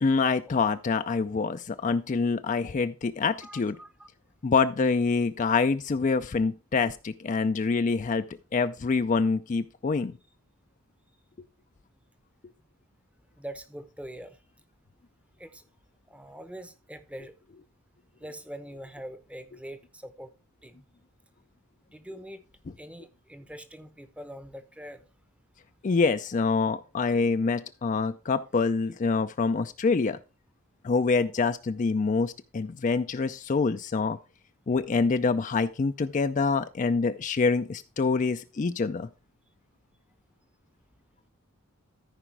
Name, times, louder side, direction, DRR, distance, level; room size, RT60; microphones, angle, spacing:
voice 1, 0.0-3.8 4.4-8.2 8.5-10.1 25.8-30.2 30.8-34.2 34.7-39.1, left 4 dB, 35° left, 0.4 m, -26 dB
voice 2, 3.4-4.1 13.4-14.4 15.4-15.6 16.1-17.3 18.2-20.3 20.6-20.8 21.9-22.4 22.8-25.0, right 1 dB, 5° right, 0.7 m, -43 dB
14.0 x 5.0 x 4.6 m
head